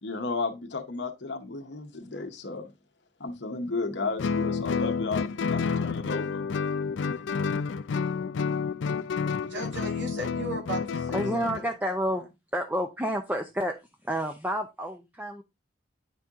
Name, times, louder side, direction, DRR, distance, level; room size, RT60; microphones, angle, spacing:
voice 1, 0.0-2.7 3.2-6.5, left 3 dB, 65° left, 0.9 m, -33 dB
Guitar, 4.2-11.7, left 5 dB, 80° left, 0.4 m, -29 dB
voice 2, 9.3-12.2, right 2 dB, 70° right, 2.5 m, -38 dB
voice 3, 11.1-12.2 12.5-13.8 14.0-15.4, equal, 10° right, 0.6 m, -29 dB
10.0 x 4.3 x 3.6 m
head